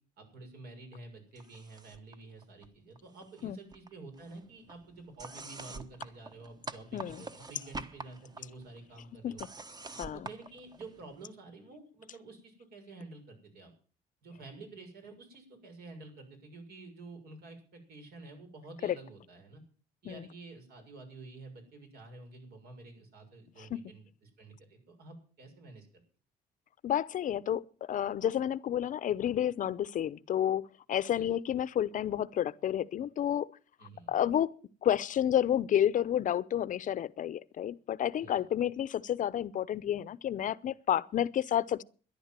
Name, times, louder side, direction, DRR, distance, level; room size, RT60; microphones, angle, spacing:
voice 1, 0.2-9.4 10.1-13.7 14.2-19.6 20.0-26.0 31.1-31.3 33.8-34.1 38.2-38.4, right 3 dB, 65° right, 6.6 m, -50 dB
sound 1, 1.4-2.2 2.4-3.4 3.7-11.3, right 3 dB, 25° right, 1.3 m, -47 dB
voice 2, 6.9-7.2 9.2-9.3 10.0-10.3 18.8-19.0 20.0-20.2 23.6-23.8 26.8-30.6 30.9-33.5 34.1-34.5 34.8-41.8, left 10 dB, 50° left, 0.7 m, -30 dB
13.5 x 11.0 x 7.5 m
cardioid pair, 110°, 17 cm